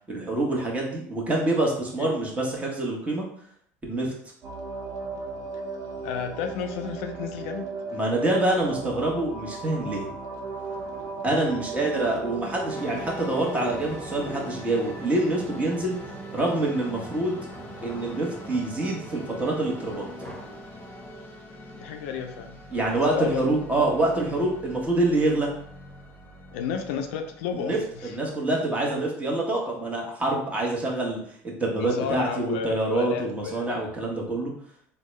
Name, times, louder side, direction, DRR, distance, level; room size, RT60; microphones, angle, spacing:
voice 1, 0.1-3.3 3.8-4.1 7.9-10.1 11.2-16.0 16.3-17.4 17.8-20.1 22.7-25.5 27.6-34.5, right 2 dB, 20° right, -2 dB, 1.2 m, -26 dB
sound 1, 4.4-21.2, right 4 dB, 55° right, 0.6 m, -38 dB
voice 2, 6.0-7.7 21.7-23.6 26.5-27.7 28.0-28.2 31.8-33.7, left 7 dB, 75° left, 5 dB, 0.4 m, -32 dB
sound 2, 10.2-21.2, left 1 dB, 10° left, 1.2 m, -46 dB
sound 3, 12.7-28.3, left 1 dB, 30° left, 0.9 m, -44 dB
3.5 x 2.2 x 3.1 m, 0.66 s
hypercardioid pair, 85°, 7 cm